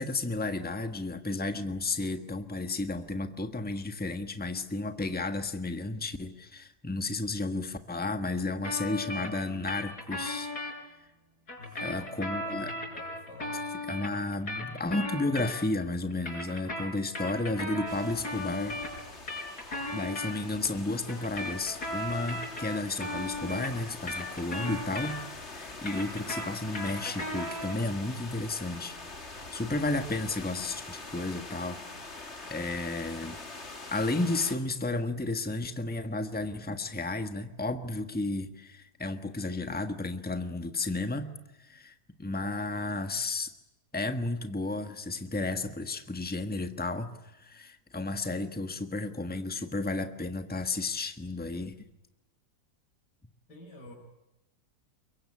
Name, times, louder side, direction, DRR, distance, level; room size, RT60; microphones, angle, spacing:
voice 1, 0.0-10.5 11.8-12.7 13.8-18.8 19.7-31.8 32.1-33.4 33.9-41.9 42.2-43.5 43.9-47.1 47.4-51.9, left 2 dB, 5° left, 8 dB, 1.4 m, -33 dB
sound 1, 8.6-10.7 11.5-15.8 16.1-20.3 21.1-25.4 25.7-27.8, left 1 dB, 70° left, 6.8 m, -36 dB
voice 2, 11.6-13.6 53.5-53.9, left 2 dB, 85° left, -1 dB, 5.6 m, -47 dB
sound 2, 17.9-34.6, left 3 dB, 40° left, 2.8 m, -44 dB
23.0 x 23.0 x 9.8 m, 0.94 s
omnidirectional pair, 1.7 m